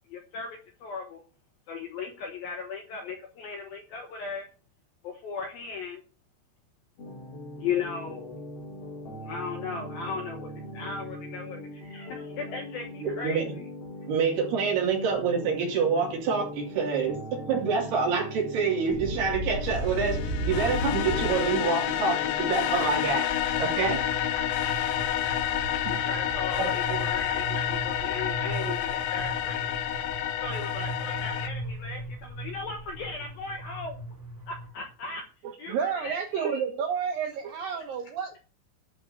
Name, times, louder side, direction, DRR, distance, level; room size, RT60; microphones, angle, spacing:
voice 1, 0.1-1.2 1.7-4.5 5.0-6.0 7.6-8.3 9.2-13.6 25.8-29.8 30.4-34.0 34.5-35.2 35.6-36.6, left 5 dB, 70° left, 3 dB, 2.3 m, -37 dB
sound 1, 7.0-23.1, left 1 dB, 50° left, 1.9 m, -41 dB
voice 2, 13.0-13.5 14.1-23.3 23.6-24.0 26.6-27.0 28.6-28.8, right 5 dB, 55° right, 0 dB, 4.7 m, -27 dB
sound 2, 18.9-34.7, right 1 dB, 25° right, 1.6 m, -36 dB
sound 3, 19.6-31.5, left 11 dB, 90° left, 3.5 m, -29 dB
voice 3, 35.4-38.4, right 7 dB, 85° right, 3 dB, 2.0 m, -30 dB
12.0 x 5.0 x 7.0 m, 0.35 s
omnidirectional pair, 5.8 m